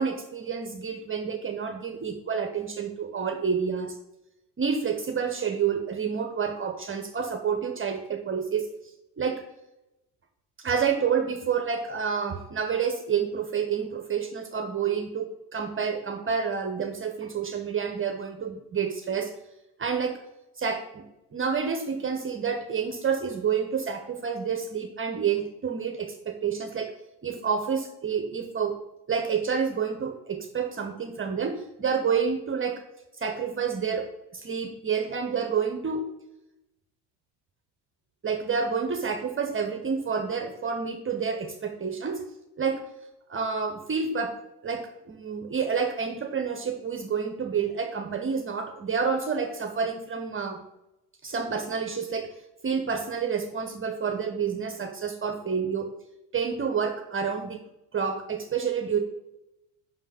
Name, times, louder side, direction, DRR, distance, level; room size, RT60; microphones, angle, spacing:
voice 1, 0.0-3.9 4.6-8.7 9.2-9.4 10.6-19.3 19.8-20.2 20.6-21.1 21.3-26.9 27.2-28.8 29.1-32.8 33.2-36.0 38.2-42.2 42.6-42.8 43.3-44.3 44.6-50.6 51.2-52.3 52.6-55.9 56.3-57.6 57.9-59.0, right 6 dB, 25° right, 5 dB, 0.9 m, -29 dB
5.9 x 5.5 x 4.9 m, 0.92 s
hypercardioid pair, 75°, 46 cm